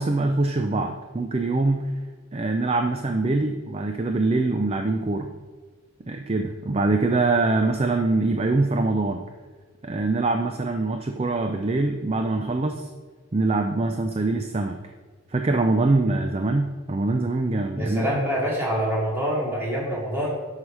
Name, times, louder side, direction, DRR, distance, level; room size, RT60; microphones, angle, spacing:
voice 1, 0.0-1.8 2.3-5.3 6.1-9.2 9.8-12.9 13.3-14.7 15.3-18.2, right 2 dB, 30° right, 5 dB, 0.4 m, -24 dB
voice 2, 17.8-20.3, equal, 10° right, -5 dB, 2.3 m, -26 dB
7.9 x 5.7 x 6.2 m, 1.4 s
head